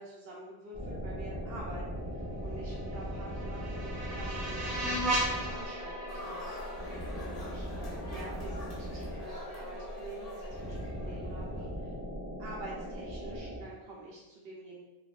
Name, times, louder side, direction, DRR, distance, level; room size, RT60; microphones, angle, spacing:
voice 1, 0.0-6.5 7.1-11.9 12.4-14.8, right 2 dB, 65° right, -5 dB, 0.9 m, -47 dB
sound 1, 0.7-13.6, equal, 30° right, 1.4 m, -39 dB
sound 2, 2.8-7.8, right 1 dB, 45° right, 0.5 m, -36 dB
sound 3, 6.1-11.7, left 2 dB, 45° left, 0.6 m, -47 dB
4.7 x 2.3 x 2.4 m, 1.0 s
omnidirectional pair, 1.1 m